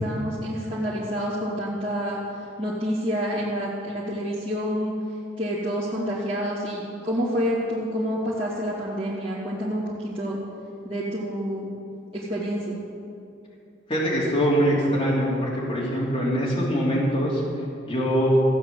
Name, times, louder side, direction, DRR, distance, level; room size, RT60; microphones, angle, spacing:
voice 1, 0.0-2.2 2.6-4.9 5.4-10.4 10.8-11.7 12.1-12.8, equal, 30° right, -10 dB, 2.3 m, -28 dB
voice 2, 13.9-17.4 17.9-18.3, equal, 25° left, -7 dB, 3.4 m, -23 dB
15.5 x 9.5 x 7.6 m, 2.6 s
head